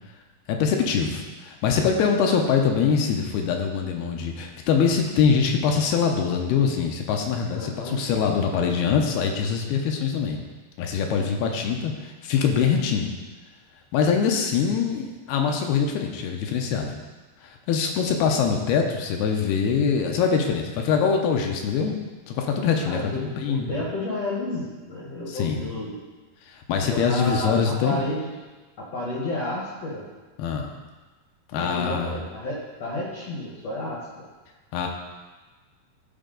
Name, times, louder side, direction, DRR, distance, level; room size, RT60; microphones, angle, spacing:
voice 1, 0.5-10.4 10.8-13.1 13.9-16.9 17.4-22.0 22.3-23.8 25.3-25.6 26.5-28.0 30.4-30.7 31.5-32.1 34.7-34.9, left 6 dB, 80° left, 2 dB, 2.6 m, -23 dB
voice 2, 7.5-8.0 22.8-26.0 26.8-28.3 28.8-30.0 31.5-34.2, left 1 dB, 65° left, -5 dB, 1.6 m, -31 dB
12.0 x 4.5 x 3.8 m, 1.3 s
omnidirectional pair, 4.5 m